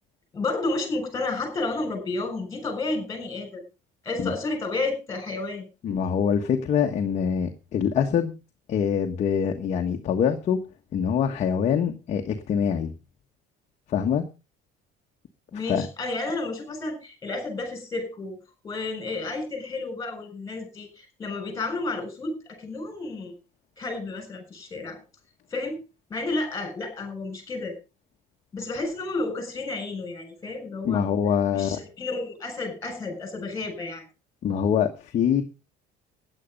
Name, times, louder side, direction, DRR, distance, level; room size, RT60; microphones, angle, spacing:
voice 1, 0.3-3.6 4.0-5.6 15.5-18.4 18.6-23.3 23.8-25.0 25.5-25.8 26.1-27.8 28.5-31.1 31.5-34.0, left 3 dB, 15° left, 5 dB, 6.9 m, -31 dB
voice 2, 5.8-8.3 8.7-10.6 10.9-12.9 13.9-14.2 15.7-15.9 30.8-31.8 34.4-35.4, left 7 dB, 35° left, 3 dB, 1.5 m, -24 dB
16.5 x 10.0 x 5.4 m, 0.32 s
cardioid pair, 175°, 19 cm